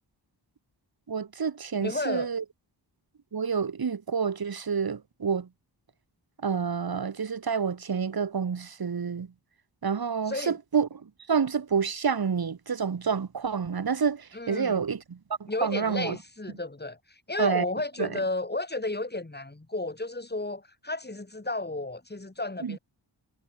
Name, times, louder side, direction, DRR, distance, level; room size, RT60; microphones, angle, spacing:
voice 1, 1.1-2.4 3.3-5.5 6.4-9.3 9.8-16.2 17.4-17.7 18.0-18.1 22.6-22.8, right 6 dB, 55° right, 1.3 m, -28 dB
voice 2, 1.8-2.3 10.3-10.6 14.3-14.8 15.5-22.8, left 2 dB, 20° left, 2.8 m, -33 dB
wide cardioid pair, 55°, 44 cm